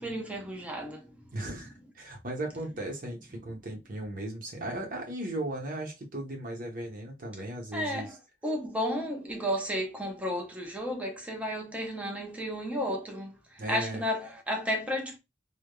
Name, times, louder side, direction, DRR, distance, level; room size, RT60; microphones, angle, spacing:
voice 1, 0.0-1.3 7.7-8.2 8.4-15.2, equal, 5° right, 0.6 m, -33 dB
voice 2, 1.3-8.1 13.6-14.0, right 1 dB, 50° right, 0.9 m, -37 dB
3.4 x 2.1 x 2.2 m
head